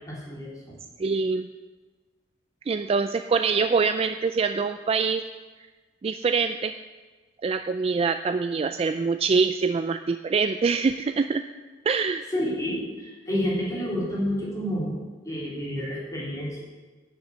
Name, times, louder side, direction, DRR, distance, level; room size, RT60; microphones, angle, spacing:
voice 1, 0.1-0.8 12.3-15.0 15.2-16.6, equal, 20° left, -6 dB, 3.3 m, -29 dB
voice 2, 1.0-1.5 2.7-5.2 6.0-6.7 7.4-11.4 11.9-12.2, right 5 dB, 30° right, 8 dB, 0.3 m, -24 dB
10.5 x 6.2 x 8.4 m, 1.3 s
head